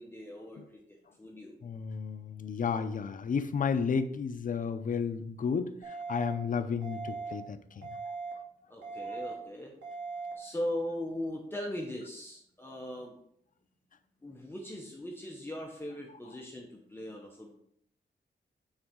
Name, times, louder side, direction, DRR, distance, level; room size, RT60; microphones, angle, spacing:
voice 1, 0.0-1.6 8.7-9.7 10.4-13.2 14.2-17.5, left 1 dB, 10° left, -1 dB, 0.9 m, -39 dB
voice 2, 1.6-8.0, left 6 dB, 45° left, 9 dB, 0.5 m, -32 dB
sound 1, 5.8-6.3 6.8-7.3 7.8-8.3 8.8-9.3 9.8-10.3, right 4 dB, 75° right, 2.1 m, -39 dB
8.8 x 3.9 x 3.7 m, 0.69 s
wide cardioid pair, 145°, 20 cm